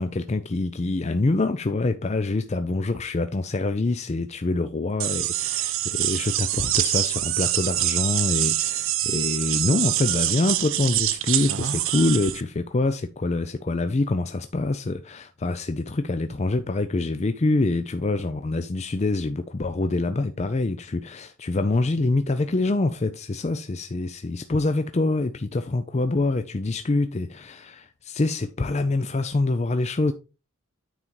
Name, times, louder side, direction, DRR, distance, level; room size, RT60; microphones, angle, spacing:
voice 1, 0.0-30.1, left 2 dB, 30° left, 0.4 m, -25 dB
sound 1, 5.0-12.4, right 14 dB, 65° right, 0.6 m, -25 dB
9.2 x 4.0 x 4.6 m
head